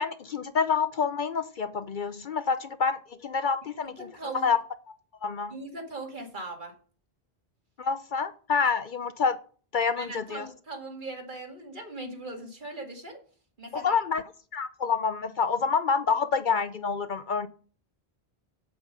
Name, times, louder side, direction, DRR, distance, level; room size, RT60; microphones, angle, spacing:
voice 1, 0.0-4.1 4.4-4.6 4.9-5.0 5.2-5.6 7.8-9.4 9.7-10.5 13.7-14.2 14.5-17.5, left 5 dB, 55° left, 13 dB, 0.7 m, -27 dB
voice 2, 3.8-4.5 5.5-6.8 10.0-13.2 13.6-14.0, right 2 dB, 50° right, 4 dB, 2.1 m, -39 dB
8.2 x 7.8 x 5.2 m, 0.40 s
omnidirectional pair, 1.1 m